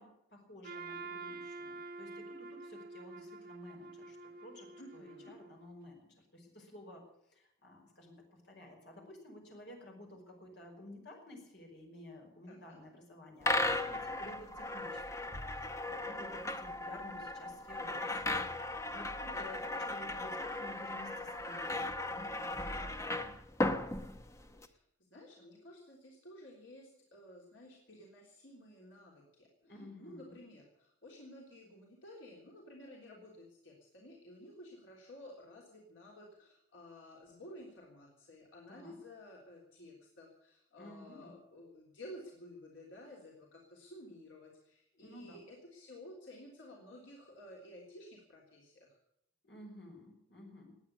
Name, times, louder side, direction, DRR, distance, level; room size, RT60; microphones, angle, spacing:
voice 1, 0.0-7.0 7.3-18.4 18.9-23.4 29.6-30.4 38.7-39.0 40.7-41.3 44.9-45.4 49.4-50.8, left 1 dB, 65° left, 1 dB, 5.3 m, -53 dB
Trumpet, 0.6-5.7, right 3 dB, 50° right, 1.7 m, -47 dB
voice 2, 4.8-5.4 12.5-12.8 19.3-19.6 24.6-24.8 25.1-48.9, left 1 dB, 85° left, -2 dB, 3.5 m, -53 dB
sound 1, 13.4-24.7, left 2 dB, 15° left, 0.8 m, -37 dB
19.5 x 9.0 x 8.2 m, 0.77 s
head